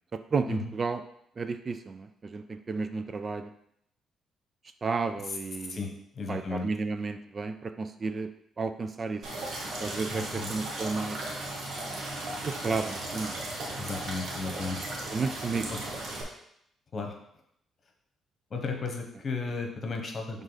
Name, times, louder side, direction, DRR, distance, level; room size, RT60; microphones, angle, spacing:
voice 1, 0.3-1.0 1.4-2.1 2.3-3.5 4.8-5.8 6.3-8.3 8.6-9.2 9.8-11.2 12.4-13.4 15.1-15.7, right 4 dB, 35° right, 9 dB, 0.4 m, -32 dB
voice 2, 5.7-6.7 10.1-10.5 13.8-14.9 15.7-15.8 16.9-17.1 18.5-20.4, left 4 dB, 45° left, 3 dB, 1.2 m, -35 dB
sound 1, 9.2-16.2, right 1 dB, 60° right, 1.4 m, -36 dB
6.4 x 3.6 x 4.0 m, 0.73 s
cardioid pair, 90°, 0 cm